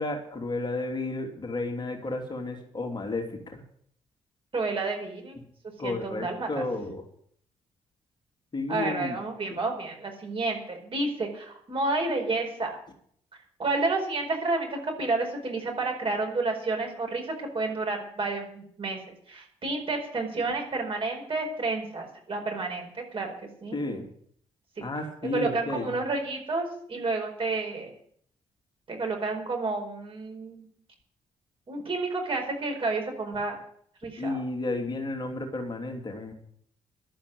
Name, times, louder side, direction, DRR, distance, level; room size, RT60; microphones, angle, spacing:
voice 1, 0.0-3.6 5.8-7.0 8.5-9.2 9.5-9.6 23.7-24.0 24.8-25.9 34.2-36.3, left 2 dB, 30° left, 2 dB, 2.9 m, -32 dB
voice 2, 4.5-5.4 5.8-6.6 8.7-12.8 13.6-23.3 23.6-23.8 24.8-24.9 25.2-27.9 28.9-30.7 31.7-33.6 34.0-34.4, right 3 dB, 35° right, 2 dB, 4.9 m, -30 dB
12.0 x 8.1 x 9.7 m, 0.65 s
figure-of-eight pair, 40°, 15 cm